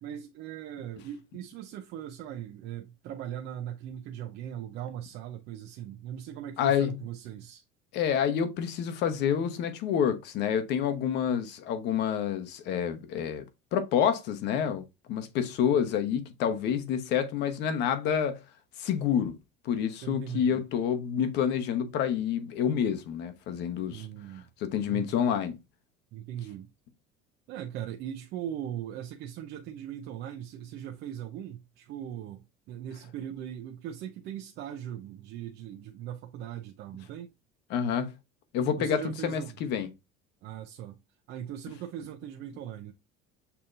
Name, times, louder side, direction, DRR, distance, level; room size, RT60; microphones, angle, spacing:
voice 1, 0.0-7.6 20.0-20.7 23.9-24.5 24.9-25.2 26.1-26.7 27.5-37.3 38.8-39.6 40.4-41.0 41.3-42.9, right 10 dB, 55° right, 0.6 m, -39 dB
voice 2, 6.6-7.0 7.9-13.4 13.7-18.4 18.8-19.4 19.6-24.1 24.6-25.6 37.7-38.1 38.5-39.9, left 8 dB, 60° left, 1.0 m, -28 dB
6.9 x 2.8 x 2.5 m
cardioid pair, 130°, 20 cm